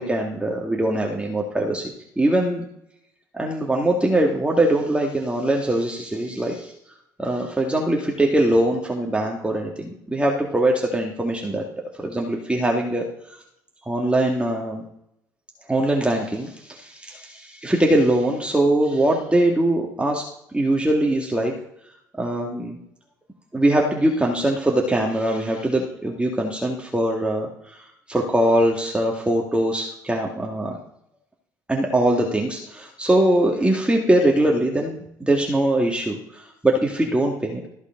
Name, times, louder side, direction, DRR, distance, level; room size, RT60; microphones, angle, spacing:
voice 1, 0.0-2.7 3.3-6.7 7.2-11.7 12.0-13.4 13.9-14.8 15.7-20.3 20.5-21.6 22.2-22.8 23.5-30.8 31.7-37.6, right 1 dB, 10° right, 0 dB, 2.2 m, -22 dB
14.0 x 7.9 x 3.9 m, 0.78 s
hypercardioid pair, 55°, 10 cm